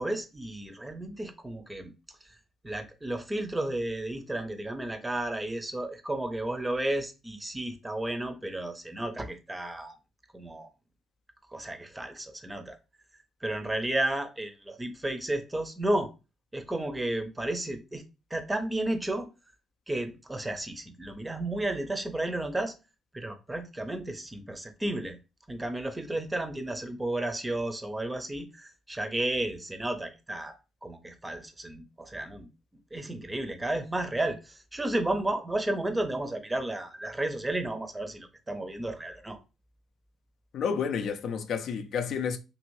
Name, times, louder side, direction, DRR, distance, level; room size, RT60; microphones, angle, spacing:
voice 1, 0.0-1.9 2.6-9.9 10.3-10.7 11.5-12.8 13.4-16.1 16.5-18.0 18.3-19.3 19.9-22.7 23.1-25.2 25.5-30.6 30.8-32.5 32.9-39.4, right 1 dB, 15° right, 0.5 m, -32 dB
voice 2, 40.5-42.4, left 6 dB, 70° left, 0.4 m, -30 dB
2.8 x 2.6 x 3.0 m
cardioid pair, 90°, 0 cm